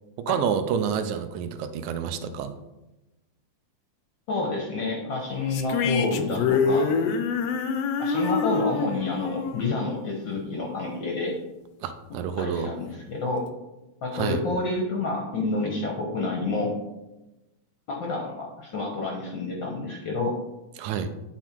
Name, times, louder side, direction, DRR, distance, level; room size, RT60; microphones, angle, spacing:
voice 1, 0.2-2.6 11.8-12.7 14.1-14.4 20.8-21.1, right 7 dB, 80° right, 10 dB, 1.9 m, -28 dB
voice 2, 4.3-6.9 8.0-11.3 12.4-13.4 14.0-16.7 17.9-20.4, left 3 dB, 75° left, 0 dB, 1.0 m, -29 dB
sound 1, 5.5-10.9, left 5 dB, 90° left, 1.4 m, -26 dB
9.8 x 4.0 x 4.5 m, 1.0 s
omnidirectional pair, 3.6 m